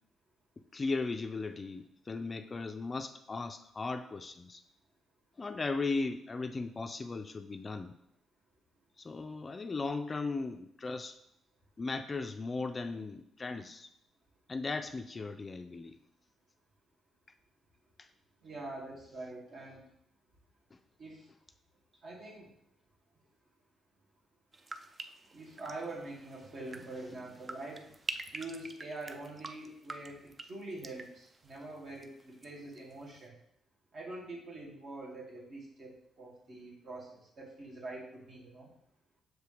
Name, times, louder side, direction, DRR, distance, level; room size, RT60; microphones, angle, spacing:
voice 1, 0.6-4.6 5.4-7.9 9.0-11.2 11.8-13.9 14.5-16.0, left 3 dB, 30° left, 8 dB, 0.4 m, -37 dB
voice 2, 18.4-19.9 21.0-21.3 22.0-22.5 25.3-27.9 28.3-33.4 33.9-38.7, right 2 dB, 55° right, -3 dB, 2.2 m, -45 dB
sound 1, 24.5-32.5 32.7-33.3, right 3 dB, 30° right, 0.5 m, -47 dB
6.3 x 4.7 x 3.4 m, 0.72 s
cardioid pair, 90°, 0 cm